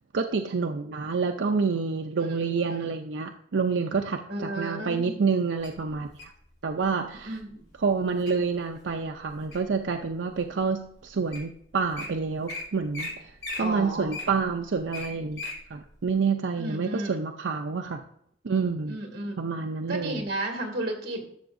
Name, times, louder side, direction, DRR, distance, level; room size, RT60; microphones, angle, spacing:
voice 1, 0.1-6.3 6.6-7.3 7.8-13.3 13.6-15.4 15.7-18.0 18.4-19.0 19.4-20.2, right 5 dB, 85° right, 4 dB, 0.5 m, -28 dB
voice 2, 2.3-3.2 4.3-5.1 7.2-7.5 13.6-14.1 16.6-17.1 18.9-19.3 19.9-21.2, right 1 dB, 55° right, 2 dB, 2.2 m, -33 dB
Wild animals, 5.6-6.4 7.1-7.4 7.9-8.3 8.8-9.8 10.4-10.5 11.1-11.2 11.3-11.5 11.8-12.1 12.5-12.6 12.9-13.1 13.4-15.6 16.0-16.1, left 2 dB, 60° left, 3.2 m, -37 dB
12.0 x 7.0 x 2.6 m, 0.71 s
head